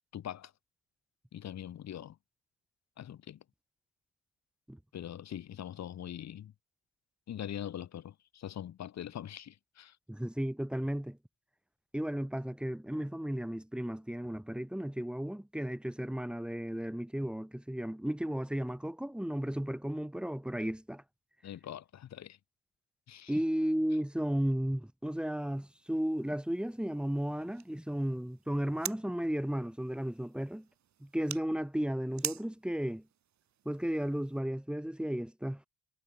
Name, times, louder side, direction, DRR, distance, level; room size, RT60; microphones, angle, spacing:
voice 1, 0.1-0.5 1.3-2.2 3.0-3.4 4.9-6.5 7.3-10.0 21.4-22.4 23.1-23.3, left 10 dB, 60° left, 1.9 m, -42 dB
voice 2, 10.1-11.2 11.9-21.0 23.3-30.7 31.0-33.0 33.6-35.6, equal, 5° right, 1.1 m, -34 dB
sound 1, 25.0-34.4, right 10 dB, 65° right, 4.5 m, -47 dB
cardioid pair, 90°, 30 cm